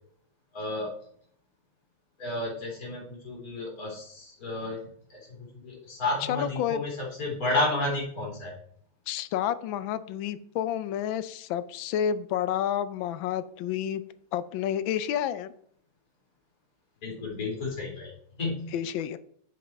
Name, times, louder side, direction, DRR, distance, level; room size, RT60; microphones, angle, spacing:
voice 1, 0.5-1.0 2.2-8.6 17.0-18.7, left 2 dB, 40° left, -2 dB, 3.6 m, -32 dB
voice 2, 6.3-6.8 9.1-14.0 14.3-15.5 18.7-19.2, left 10 dB, 75° left, 15 dB, 1.3 m, -30 dB
8.0 x 7.3 x 4.5 m, 0.64 s
omnidirectional pair, 2.4 m